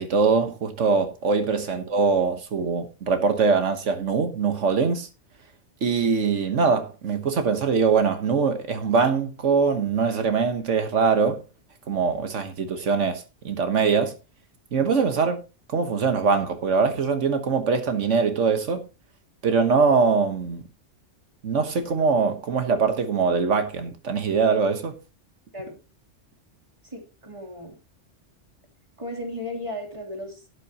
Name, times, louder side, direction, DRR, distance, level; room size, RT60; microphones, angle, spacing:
voice 1, 0.0-5.1 5.8-11.4 11.9-14.1 14.7-15.4 15.7-18.8 19.4-20.6 21.4-24.9, right 5 dB, 90° right, 1.5 m, -22 dB
voice 2, 26.8-27.8 29.0-30.4, left 1 dB, 25° right, 3.0 m, -35 dB
12.0 x 9.9 x 2.9 m
omnidirectional pair, 1.2 m